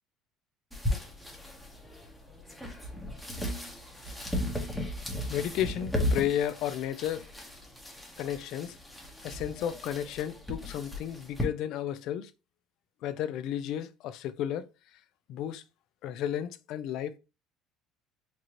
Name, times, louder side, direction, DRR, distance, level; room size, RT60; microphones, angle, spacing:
sound 1, 0.7-11.4, left 1 dB, 5° left, 0.9 m, -36 dB
voice 1, 5.3-7.3 8.2-8.8 9.2-12.3 13.0-15.0 15.3-15.6 16.0-17.2, left 10 dB, 65° left, 0.4 m, -33 dB
4.6 x 2.6 x 2.9 m
cardioid pair, 140°, 0 cm